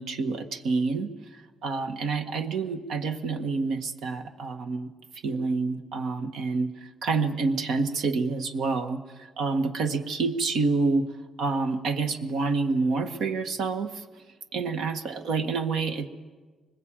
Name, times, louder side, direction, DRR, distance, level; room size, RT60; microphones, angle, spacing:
voice 1, 0.0-4.9 5.2-11.1 11.4-14.0 14.5-16.1, right 4 dB, 80° right, 7 dB, 1.6 m, -28 dB
24.5 x 21.0 x 9.0 m, 1.4 s
cardioid pair, 90°, 0 cm